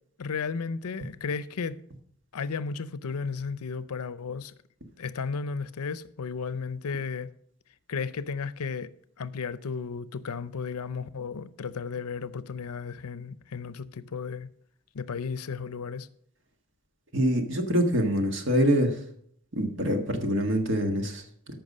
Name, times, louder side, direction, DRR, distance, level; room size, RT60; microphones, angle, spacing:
voice 1, 0.2-1.8 2.3-4.5 5.0-7.3 7.9-8.9 9.2-14.5 14.9-16.1, left 5 dB, 90° left, 0.6 m, -34 dB
voice 2, 17.1-19.0 19.5-21.5, equal, 55° right, 1.6 m, -25 dB
14.0 x 5.8 x 5.4 m
head